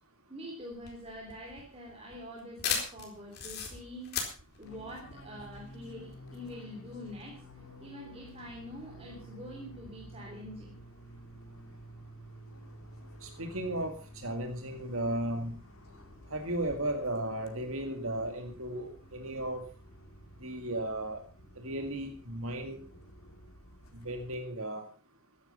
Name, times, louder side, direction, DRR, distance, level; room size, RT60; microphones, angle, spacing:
voice 1, 0.3-4.1 4.6-7.4 7.8-10.7, equal, 25° right, -1 dB, 3.3 m, -45 dB
sound 1, 0.7-5.9, left 6 dB, 45° left, 4.1 m, -37 dB
Fixed-wing aircraft airplane, 4.6-24.3, equal, 75° left, 2.4 m, -52 dB
voice 2, 13.2-15.5 16.3-19.6 20.4-21.2 21.6-22.8 23.9-24.9, right 1 dB, 70° right, 5 dB, 2.2 m, -35 dB
15.0 x 11.0 x 5.5 m, 0.37 s
head